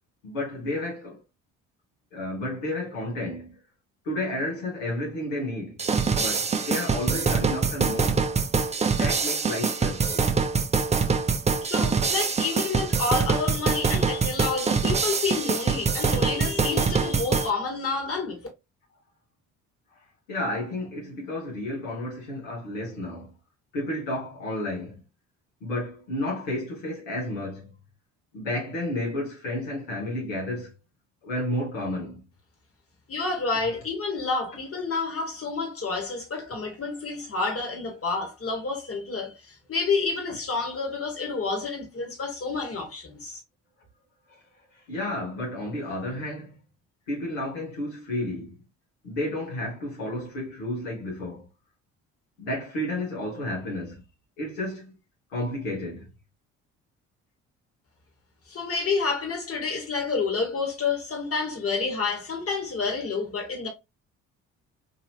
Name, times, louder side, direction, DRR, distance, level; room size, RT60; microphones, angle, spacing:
voice 1, 0.2-1.2 2.1-3.6 4.0-5.8 6.1-8.2 8.8-10.3 20.3-23.3 23.7-25.0 25.6-27.7 28.3-30.7 31.2-32.2 44.3-44.4 44.7-46.6 47.1-48.6 49.0-51.5 52.4-54.0 54.4-54.9 55.3-56.1, left 1 dB, 80° left, 1.2 m, -31 dB
sound 1, 5.8-17.5, right 5 dB, 20° right, 0.5 m, -24 dB
voice 2, 11.6-18.4 33.1-43.4 58.5-63.7, left 4 dB, 35° left, 1.6 m, -29 dB
3.0 x 2.7 x 2.8 m
hypercardioid pair, 50°, 38 cm